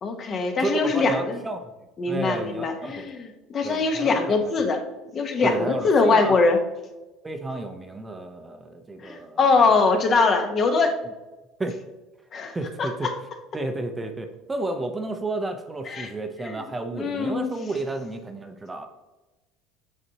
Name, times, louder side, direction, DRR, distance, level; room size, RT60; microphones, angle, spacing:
voice 1, 0.0-1.4 2.0-4.8 5.1-6.6 9.0-10.9 12.3-13.1 15.9-16.1 16.4-16.6 16.9-17.5, left 4 dB, 40° left, 5 dB, 0.9 m, -22 dB
voice 2, 0.6-1.6 2.1-3.0 3.6-4.5 5.4-6.4 7.2-9.4 11.6-11.7 12.5-13.1 13.5-18.9, right 2 dB, 15° right, 6 dB, 0.6 m, -31 dB
8.0 x 4.2 x 2.8 m, 1.1 s
supercardioid pair, 110°, 0 cm